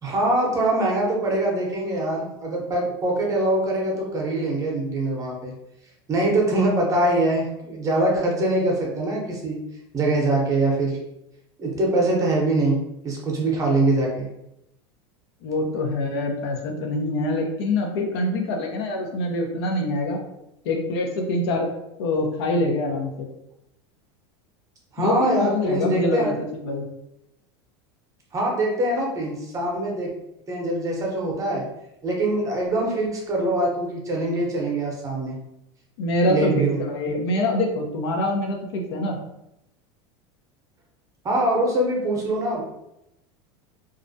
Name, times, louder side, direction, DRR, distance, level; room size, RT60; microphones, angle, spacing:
voice 1, 0.0-5.5 6.1-9.6 9.9-11.0 11.6-14.3 24.9-26.4 28.3-30.1 30.5-31.6 32.0-35.4 36.3-36.8 41.2-42.6, right 2 dB, 25° right, -1 dB, 0.6 m, -23 dB
voice 2, 15.4-20.2 20.6-21.7 22.0-23.3 25.0-26.8 36.0-39.2, left 1 dB, 85° left, 2 dB, 0.6 m, -25 dB
2.4 x 2.1 x 2.6 m, 0.84 s
supercardioid pair, 130°, 14 cm